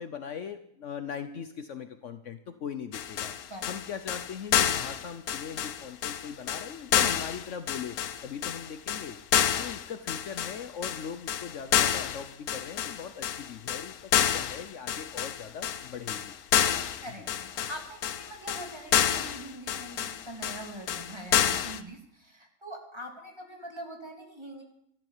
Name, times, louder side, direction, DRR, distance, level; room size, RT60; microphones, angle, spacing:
voice 1, 0.0-3.3 3.6-9.2 9.6-16.3, left 7 dB, 60° left, 10 dB, 1.1 m, -40 dB
sound 1, 2.9-21.8, left 9 dB, 90° left, 1.3 m, -29 dB
voice 2, 9.3-9.7 17.0-24.6, right 1 dB, 20° right, 0 dB, 3.0 m, -43 dB
13.5 x 12.0 x 7.3 m, 0.72 s
omnidirectional pair, 1.5 m